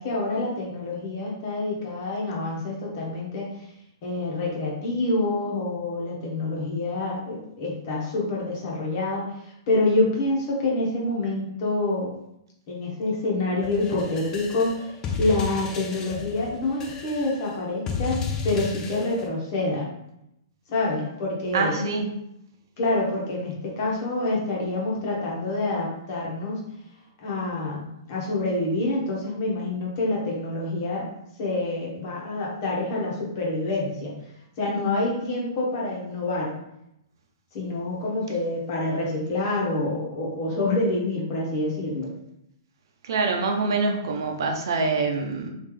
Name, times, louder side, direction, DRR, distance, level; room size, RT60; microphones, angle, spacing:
voice 1, 0.0-3.5 4.0-12.1 12.7-19.9 20.7-21.8 22.8-26.6 27.2-31.1 31.4-34.1 34.6-36.5 37.5-42.1, left 2 dB, 50° left, -3 dB, 1.4 m, -27 dB
sound 1, 13.6-19.3, left 5 dB, 25° left, 0.5 m, -33 dB
voice 2, 21.5-22.1 43.0-45.5, right 3 dB, 70° right, 3 dB, 0.7 m, -25 dB
3.3 x 2.8 x 3.3 m, 0.81 s
hypercardioid pair, 125°, 2 cm